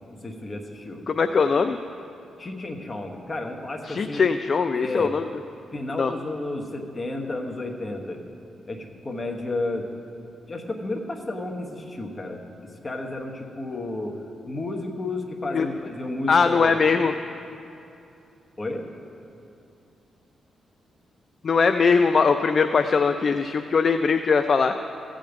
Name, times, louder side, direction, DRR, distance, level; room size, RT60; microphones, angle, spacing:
voice 1, 0.2-1.0 2.4-4.2 4.7-5.1 5.7-8.2 8.7-9.9 10.5-16.8 18.6-18.9, left 2 dB, 25° left, 2 dB, 1.1 m, -32 dB
voice 2, 1.1-1.8 3.9-5.3 6.0-6.1 15.5-15.7 16.3-17.1 21.4-24.7, left 5 dB, 40° left, 8 dB, 0.3 m, -21 dB
15.0 x 5.1 x 8.0 m, 2.7 s
wide cardioid pair, 145°, 0 cm